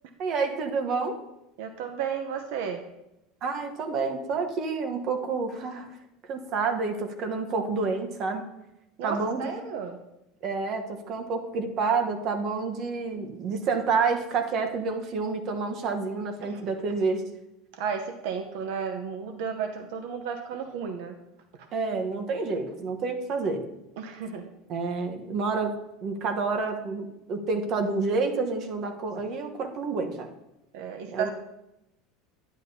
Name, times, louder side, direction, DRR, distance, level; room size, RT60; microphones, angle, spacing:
voice 1, 0.2-1.2 3.4-5.9 6.2-8.5 9.0-9.5 10.4-17.2 21.7-23.6 24.7-30.3 31.1-31.3, right 4 dB, 40° right, 5 dB, 1.0 m, -29 dB
voice 2, 1.6-2.8 9.0-10.0 16.4-16.5 17.7-21.2 24.0-24.5 30.7-31.3, right 7 dB, 65° right, 5 dB, 0.8 m, -33 dB
10.5 x 10.5 x 2.8 m, 0.89 s
cardioid pair, 160°, 0 cm